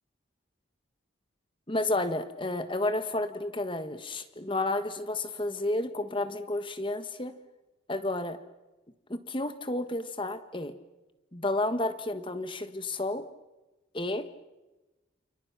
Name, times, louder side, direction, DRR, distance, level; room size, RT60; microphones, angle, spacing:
voice 1, 1.7-7.3 7.9-8.4 9.1-10.8 11.3-13.2 13.9-14.3, left 2 dB, 25° left, 10 dB, 1.4 m, -31 dB
28.5 x 28.5 x 6.1 m, 1.1 s
head